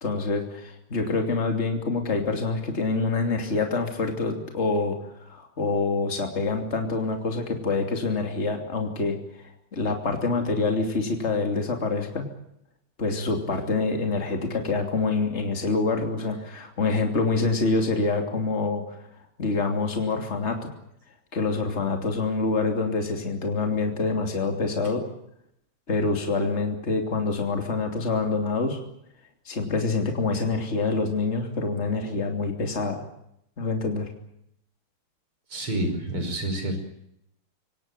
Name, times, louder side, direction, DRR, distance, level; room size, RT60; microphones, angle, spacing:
voice 1, 0.0-5.0 5.2-9.2 9.7-12.3 13.0-18.8 19.4-20.7 21.3-25.0 25.9-28.8 29.5-33.0 33.6-34.1, left 3 dB, 30° left, 4 dB, 3.2 m, -26 dB
voice 2, 35.5-36.8, right 1 dB, 80° right, 6 dB, 6.4 m, -28 dB
25.0 x 18.0 x 9.1 m, 0.78 s
omnidirectional pair, 2.4 m